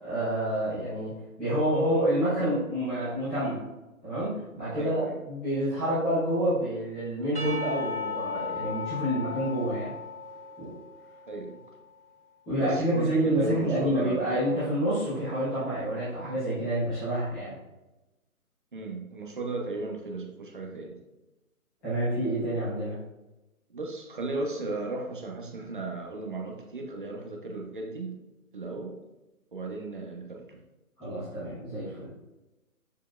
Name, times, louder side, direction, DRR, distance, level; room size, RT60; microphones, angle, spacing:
voice 1, 0.0-3.6 4.0-9.9 10.6-10.7 12.4-17.5 21.8-22.9 31.0-32.1, right 1 dB, 5° left, -17 dB, 1.0 m, -28 dB
voice 2, 4.7-5.2 11.3-11.6 12.6-14.7 18.7-21.0 23.7-28.2 28.5-29.0 29.5-30.6, right 2 dB, 35° right, 1 dB, 1.0 m, -35 dB
Percussion / Church bell, 7.3-11.5, left 5 dB, 90° right, 2.3 m, -36 dB
7.3 x 6.6 x 2.4 m, 1.0 s
hypercardioid pair, 175°, 44 cm